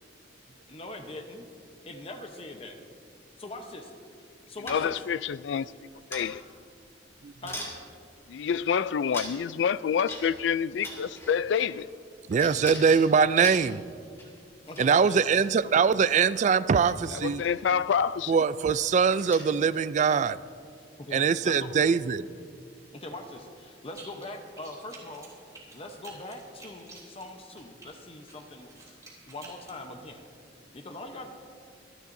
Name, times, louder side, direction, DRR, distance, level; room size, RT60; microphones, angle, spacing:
voice 1, 0.7-1.5 1.9-2.8 3.4-3.9 4.5-5.0 7.4-7.6 14.7-15.2 21.0-21.8 22.9-25.3 25.7-29.0 29.3-30.2 30.7-31.3, left 1 dB, 30° left, 0.9 m, -41 dB
voice 2, 4.7-6.4 8.3-11.9 17.1-18.4, left 7 dB, 70° left, 0.3 m, -28 dB
sound 1, 4.7-5.2 6.1-6.5 7.0-7.1 7.5-7.8 8.5-8.6 9.1-9.6 10.1-10.5 10.8-11.8 12.3-14.4 14.7-14.9 15.2-15.9 16.7-16.9 17.3-17.5 17.9-18.1 18.4-18.6 19.1-19.6, left 1 dB, 15° left, 2.5 m, -41 dB
voice 3, 12.3-13.8 14.8-17.4 18.3-20.4 21.1-22.3, right 6 dB, 40° right, 0.3 m, -23 dB
sound 2, 23.9-24.3 24.6-27.9 28.3-29.8, right 3 dB, 20° right, 3.3 m, -50 dB
25.5 x 11.5 x 2.7 m
head